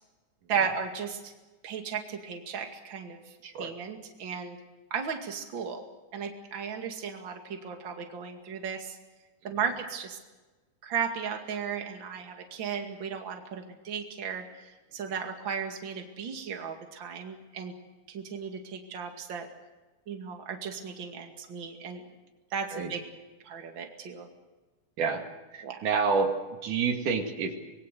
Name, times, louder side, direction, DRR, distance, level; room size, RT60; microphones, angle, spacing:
voice 1, 0.5-1.3 1.6-3.3 3.6-4.6 4.9-5.8 6.1-9.0 9.4-10.2 10.8-17.7 18.1-19.5 20.1-22.0 22.5-23.0 23.4-24.3 25.6-25.8, right 6 dB, 40° right, 4 dB, 2.8 m, -35 dB
voice 2, 25.5-27.6, right 5 dB, 85° right, 4 dB, 3.8 m, -28 dB
25.0 x 21.5 x 6.7 m, 1.2 s
omnidirectional pair, 3.5 m